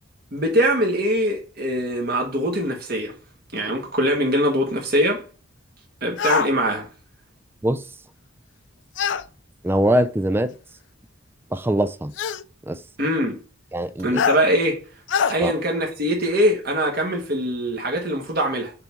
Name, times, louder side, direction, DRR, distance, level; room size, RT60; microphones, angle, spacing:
voice 1, 0.3-3.1 3.5-5.2 6.0-6.9 13.0-13.4 14.0-14.8 15.3-18.7, equal, 50° right, 1.4 m, -22 dB
sound 1, 6.2-6.5 9.0-9.2 10.5-10.6 12.2-12.4 14.2-14.4 15.1-15.3, left 6 dB, 65° left, 0.4 m, -22 dB
voice 2, 9.6-10.5 11.5-12.1 12.7-12.8 13.7-14.2 15.4-15.5, right 1 dB, 10° right, 0.4 m, -22 dB
6.7 x 3.5 x 4.5 m
head